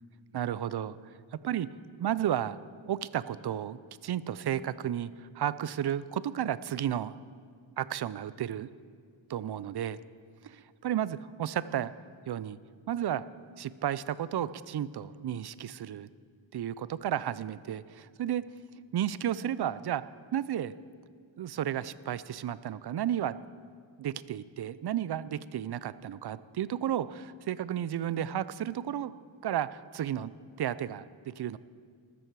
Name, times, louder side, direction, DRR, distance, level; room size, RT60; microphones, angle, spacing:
voice 1, 0.3-1.0 1.4-1.7 2.0-2.6 2.9-7.1 7.8-8.7 9.3-10.0 10.4-11.9 12.3-12.6 12.9-13.2 13.6-16.1 16.5-18.4 18.9-20.0 20.3-20.7 21.4-23.4 24.0-29.1 29.4-30.3 30.6-31.6, right 10 dB, 55° right, 17 dB, 0.5 m, -33 dB
13.5 x 13.5 x 4.7 m, 2.1 s
wide cardioid pair, 120°, 47 cm